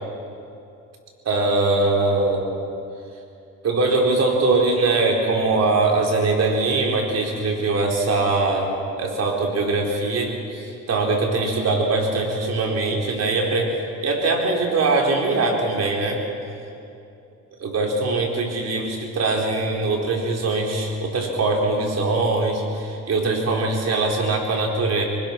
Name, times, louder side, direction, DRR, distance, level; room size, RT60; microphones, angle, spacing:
voice 1, 1.2-2.5 3.6-8.7 9.0-13.7 14.0-16.2 17.6-25.0, right 3 dB, 55° right, 0 dB, 4.6 m, -22 dB
24.5 x 21.0 x 6.1 m, 2.6 s
cardioid pair, 90°, 30 cm